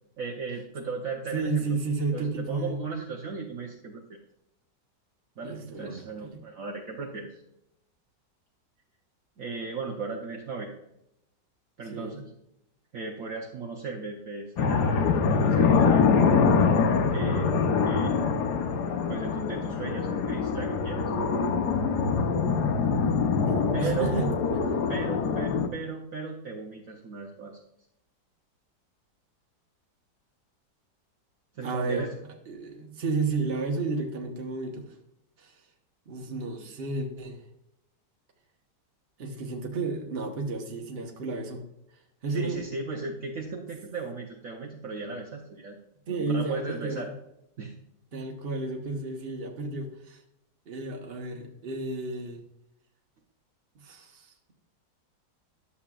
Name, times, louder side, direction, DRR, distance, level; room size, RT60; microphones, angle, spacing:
voice 1, 0.2-1.8 2.1-4.2 5.4-7.4 9.4-10.7 11.8-12.3 12.9-16.4 17.1-18.2 19.1-21.1 23.7-24.1 24.9-27.6 31.5-32.1 42.3-45.8 46.1-47.1 47.6-47.7, right 4 dB, 55° right, -1 dB, 1.2 m, -36 dB
voice 2, 1.3-2.8 5.4-6.4 11.9-12.2 23.5-24.3 24.5-24.7 31.6-32.1 32.5-34.9 35.4-35.5 36.1-37.4 39.2-41.6 42.2-42.6 46.1-47.1 48.1-50.2 50.7-52.4 53.7-54.5, right 3 dB, 40° right, 2 dB, 1.2 m, -32 dB
sound 1, 14.6-25.7, left 5 dB, 70° left, 1.3 m, -24 dB
11.5 x 7.1 x 2.4 m, 0.83 s
omnidirectional pair, 1.9 m